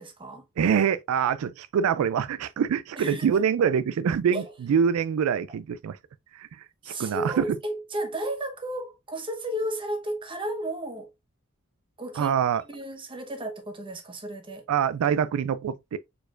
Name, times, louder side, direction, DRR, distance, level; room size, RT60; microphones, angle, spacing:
voice 1, 0.0-0.5 2.9-3.4 4.3-4.5 6.8-11.1 12.0-12.4 12.7-14.6, right 1 dB, 25° right, 1.0 m, -33 dB
voice 2, 0.6-6.0 6.3-6.5 6.9-7.6 12.2-12.6 14.7-16.0, right 7 dB, 85° right, 0.3 m, -25 dB
4.5 x 4.4 x 2.4 m
head